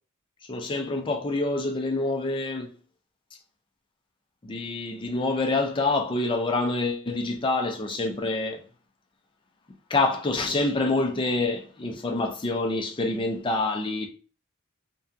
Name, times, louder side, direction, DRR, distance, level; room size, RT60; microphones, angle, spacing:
voice 1, 0.5-2.7 4.4-8.6 9.9-14.1, left 2 dB, 25° left, 0.4 m, -26 dB
2.6 x 2.2 x 2.3 m
head